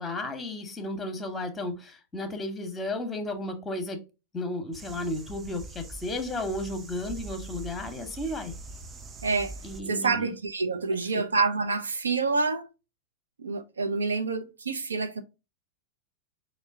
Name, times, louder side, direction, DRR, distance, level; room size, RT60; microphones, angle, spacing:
voice 1, 0.0-4.0 4.3-8.5 9.6-10.3 10.9-11.1, left 1 dB, 10° left, 0.9 m, -33 dB
sound 1, 4.7-9.8, right 3 dB, 20° right, 0.4 m, -43 dB
voice 2, 9.2-9.5 9.9-12.7 13.4-15.2, right 4 dB, 70° right, 0.5 m, -27 dB
5.3 x 2.1 x 3.6 m
figure-of-eight pair, 90°, 0 cm